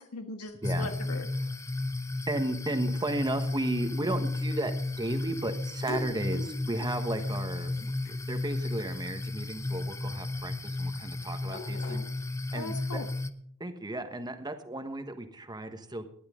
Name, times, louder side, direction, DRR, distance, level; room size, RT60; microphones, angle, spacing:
voice 1, 0.0-1.5 12.5-13.1, left 2 dB, 80° left, 6 dB, 1.5 m, -40 dB
sound 1, 0.6-13.3, left 2 dB, 15° left, 0.6 m, -33 dB
voice 2, 2.3-12.1 12.5-13.0 13.6-16.0, right 1 dB, 20° right, 8 dB, 1.3 m, -34 dB
sound 2, 3.3-12.6, left 1 dB, 65° left, 6.1 m, -46 dB
18.5 x 11.5 x 3.8 m, 0.65 s
head